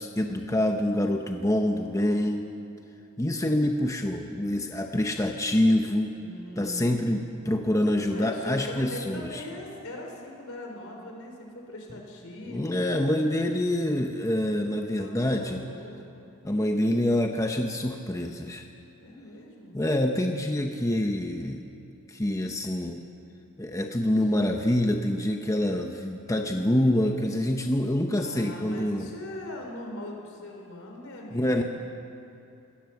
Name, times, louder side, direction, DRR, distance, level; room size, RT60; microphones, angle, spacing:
voice 1, 0.0-2.5 3.2-6.1 6.6-9.4 12.5-15.6 16.4-18.6 19.7-21.6 22.1-23.0 23.6-29.1 31.3-31.6, left 1 dB, 15° left, 4 dB, 0.9 m, -26 dB
voice 2, 6.2-7.2 8.1-12.9 14.8-16.1 19.0-19.8 24.2-24.3 28.1-31.6, left 1 dB, 70° left, 1 dB, 4.6 m, -40 dB
24.5 x 17.0 x 7.2 m, 2.8 s
head